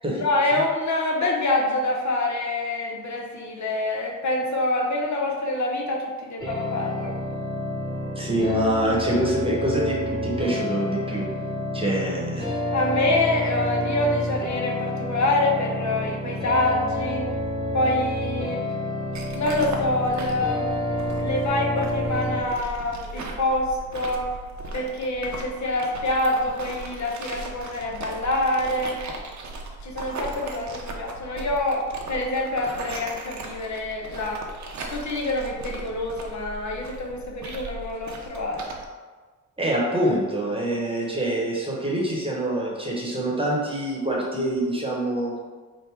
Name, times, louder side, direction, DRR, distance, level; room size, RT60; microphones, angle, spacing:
voice 1, 0.1-7.1 12.7-17.3 17.7-18.6 19.3-24.3 24.7-29.0 29.8-34.4 34.9-38.6, left 2 dB, 65° left, 0 dB, 0.7 m, -26 dB
sound 1, 6.4-22.4, left 1 dB, 15° left, 1.3 m, -29 dB
voice 2, 8.2-11.3 11.7-12.5 39.6-45.3, right 1 dB, 20° right, -3 dB, 0.9 m, -25 dB
sound 2, 19.1-38.8, right 2 dB, 65° right, 0.6 m, -38 dB
3.4 x 2.6 x 4.4 m, 1.4 s
wide cardioid pair, 105°, 31 cm